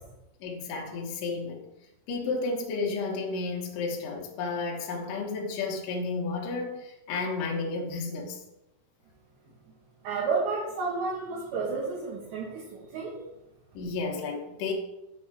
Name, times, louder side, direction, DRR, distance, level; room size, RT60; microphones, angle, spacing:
voice 1, 0.4-1.7 2.1-8.4 13.7-14.7, left 4 dB, 80° left, 0 dB, 1.9 m, -32 dB
voice 2, 10.0-13.2, right 4 dB, 65° right, -6 dB, 3.4 m, -31 dB
7.8 x 5.4 x 4.7 m, 0.92 s
omnidirectional pair, 5.7 m